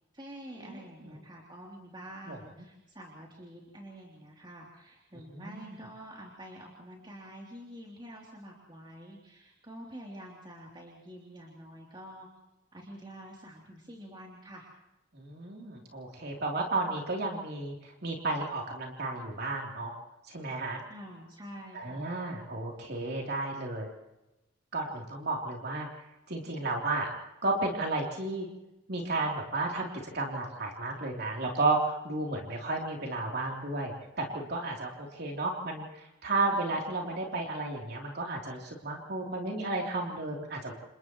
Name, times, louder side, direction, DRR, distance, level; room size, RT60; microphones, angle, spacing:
voice 1, 0.1-12.3 12.7-14.7 20.9-22.1 36.5-36.9, equal, 25° right, -3 dB, 3.2 m, -47 dB
voice 2, 5.3-5.8 15.1-20.0 20.3-20.8 21.7-24.0 24.7-25.9 26.3-27.1 27.4-28.5 28.9-29.9 30.1-40.7, right 2 dB, 55° right, -1 dB, 3.4 m, -33 dB
29.0 x 28.5 x 3.1 m, 0.96 s
head